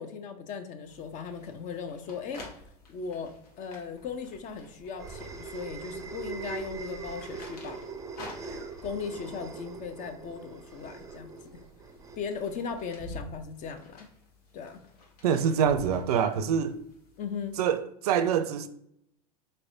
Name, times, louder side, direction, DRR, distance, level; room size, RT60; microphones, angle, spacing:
voice 1, 0.0-2.5 2.9-3.3 3.6-7.8 8.8-11.3 11.5-11.6 12.2-14.1 14.5-14.8 17.2-17.6, left 6 dB, 40° left, 0.6 m, -37 dB
sound 1, 0.8-17.7, left 1 dB, 80° left, 1.3 m, -50 dB
sound 2, 4.1-12.9, right 4 dB, 15° right, 0.5 m, -42 dB
voice 2, 15.2-16.8 17.6-18.7, right 8 dB, 80° right, 0.5 m, -25 dB
4.1 x 3.2 x 2.6 m
hypercardioid pair, 105°, 20 cm